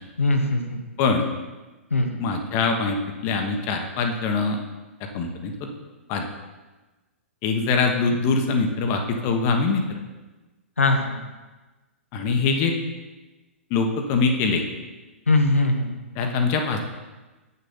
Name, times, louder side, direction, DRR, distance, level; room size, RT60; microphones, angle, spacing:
voice 1, 0.2-0.8 1.9-2.2 10.8-11.2 15.3-16.0, left 2 dB, 80° left, 4 dB, 1.1 m, -21 dB
voice 2, 2.2-3.0 3.2-4.6 5.1-5.7 6.1-6.3 7.4-10.0 12.1-12.7 13.7-14.6 16.2-16.9, left 4 dB, 35° left, 3 dB, 1.1 m, -23 dB
8.1 x 6.7 x 5.6 m, 1.2 s
figure-of-eight pair, 110°, 7 cm